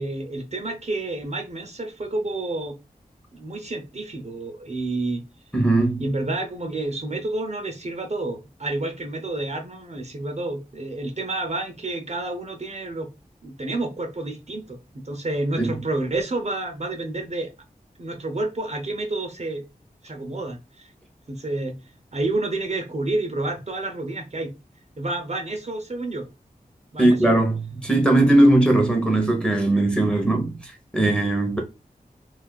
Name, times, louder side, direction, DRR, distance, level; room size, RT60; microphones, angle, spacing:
voice 1, 0.0-2.7 3.3-5.2 6.0-13.1 13.4-17.5 18.0-19.6 20.0-20.9 21.3-21.7 22.1-24.5 25.0-26.2 26.9-27.2, right 2 dB, 45° right, 0.6 m, -29 dB
voice 2, 5.5-6.0 15.6-15.7 27.0-30.5 30.9-31.6, right 1 dB, 5° left, 0.8 m, -19 dB
2.4 x 2.4 x 2.2 m
cardioid pair, 45°, 16 cm